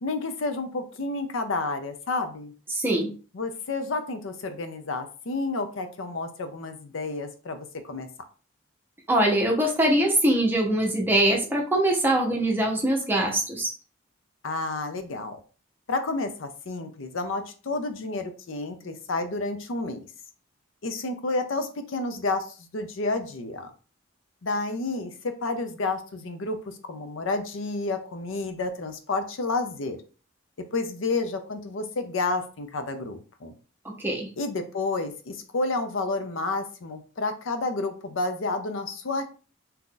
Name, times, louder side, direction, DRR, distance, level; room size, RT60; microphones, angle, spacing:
voice 1, 0.0-2.5 3.3-8.1 14.4-15.4 15.9-20.1 20.8-23.7 24.4-30.0 30.7-33.5 34.4-39.2, left 3 dB, 85° left, 8 dB, 0.6 m, -30 dB
voice 2, 2.7-3.1 9.1-13.7 34.0-34.3, right 1 dB, 10° right, -1 dB, 0.7 m, -23 dB
2.8 x 2.5 x 3.7 m, 0.37 s
head